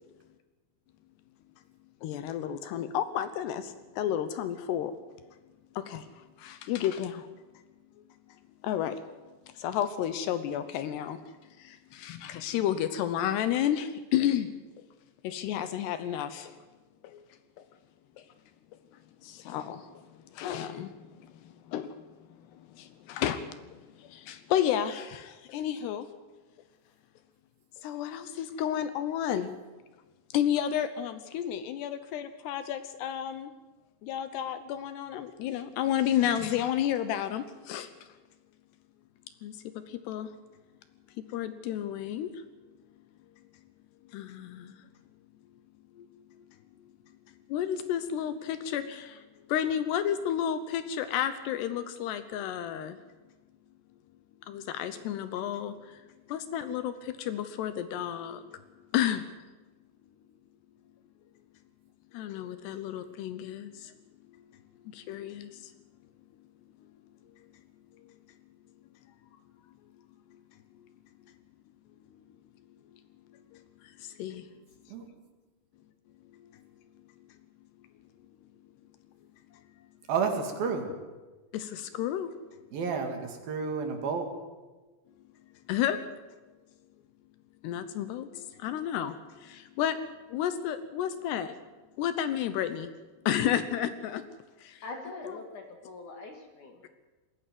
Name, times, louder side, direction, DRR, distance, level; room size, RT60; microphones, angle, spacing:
voice 1, 2.0-5.0 5.8-7.3 8.6-9.0 9.5-11.2 11.6-14.5 15.2-16.6 17.0-17.2 18.2-18.3 19.2-20.1 20.3-22.0 22.4-26.1 27.8-29.5 30.3-33.5 34.0-37.9 39.4-40.3 41.2-42.4 44.1-44.8 45.9-46.1 47.5-53.0 54.5-58.5 58.9-59.3 62.1-63.9 64.3-64.4 64.8-65.7 68.0-68.1 73.3-74.5 76.3-76.5 81.5-82.3 85.7-86.0 87.6-90.0 90.3-91.6 92.0-92.9 93.3-94.2 94.6-94.8 95.3-95.4, left 10 dB, 75° left, 11 dB, 2.9 m, -32 dB
voice 2, 80.1-80.9 82.7-84.3, right 5 dB, 60° right, 5 dB, 3.6 m, -30 dB
voice 3, 94.8-96.9, left 3 dB, 50° left, 4 dB, 3.2 m, -43 dB
20.5 x 16.0 x 9.4 m, 1.2 s
omnidirectional pair, 5.1 m